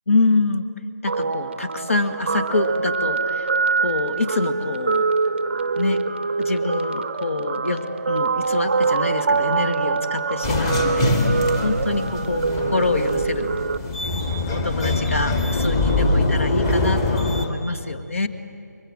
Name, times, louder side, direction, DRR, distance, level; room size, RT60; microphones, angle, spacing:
voice 1, 0.1-0.6 1.0-3.5 3.8-5.1 5.8-6.0 6.4-11.2 11.6-12.4 12.7-13.5 14.5-18.3, left 3 dB, 50° left, 11 dB, 1.9 m, -25 dB
Guitar, 1.1-13.8, right 4 dB, 35° right, 0.8 m, -24 dB
sound 1, 10.4-17.5, left 2 dB, 15° left, 1.9 m, -23 dB
29.0 x 23.5 x 7.7 m, 2.4 s
figure-of-eight pair, 160°, 10 cm